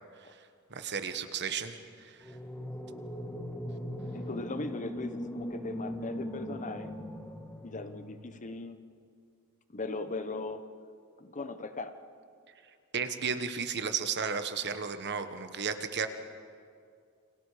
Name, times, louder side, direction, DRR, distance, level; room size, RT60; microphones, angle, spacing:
voice 1, 0.7-2.2 12.9-16.1, right 6 dB, 50° right, 9 dB, 1.3 m, -33 dB
sound 1, 2.2-8.4, equal, 10° left, 1.6 m, -40 dB
voice 2, 4.1-6.9 7.6-8.8 9.7-10.6 11.2-11.9, left 3 dB, 35° left, 10 dB, 1.0 m, -38 dB
30.0 x 25.5 x 5.0 m, 2.3 s
head